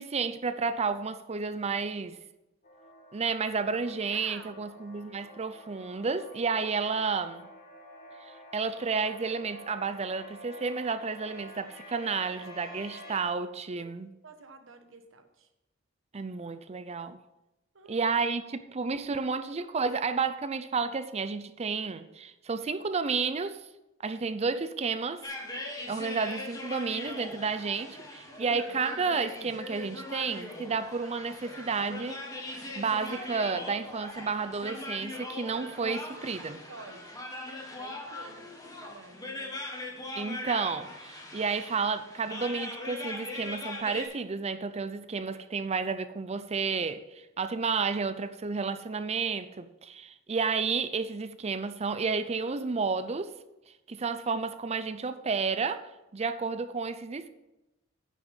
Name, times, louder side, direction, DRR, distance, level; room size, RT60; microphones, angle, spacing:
voice 1, 0.0-2.2 3.1-7.5 8.2-14.1 16.1-17.2 17.9-23.6 24.0-25.2 25.5-32.2 32.8-36.6 40.1-53.3 53.9-57.3, right 5 dB, 30° right, 0.5 m, -31 dB
sound 1, 2.6-13.2, left 1 dB, 50° left, 1.8 m, -49 dB
voice 2, 4.1-4.6 13.8-13.9 14.2-15.5 17.7-18.1 28.3-28.6 36.7-37.2 37.8-39.6, right 3 dB, 75° right, 1.2 m, -50 dB
sound 2, 25.2-44.1, left 2 dB, 20° left, 1.7 m, -40 dB
9.7 x 6.1 x 5.7 m
head